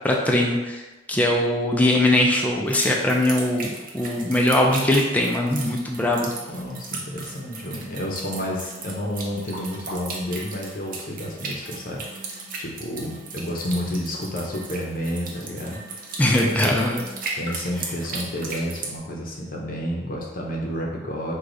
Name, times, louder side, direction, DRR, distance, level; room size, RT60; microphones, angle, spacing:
voice 1, 0.0-0.8 1.1-6.3 16.2-17.0, left 1 dB, 10° left, -1 dB, 0.4 m, -21 dB
sound 1, 2.7-18.9, right 3 dB, 50° right, 0.7 m, -36 dB
voice 2, 6.4-15.8 16.4-16.7 17.4-21.3, equal, 50° left, -2 dB, 0.7 m, -30 dB
4.9 x 2.3 x 3.8 m, 1.1 s
head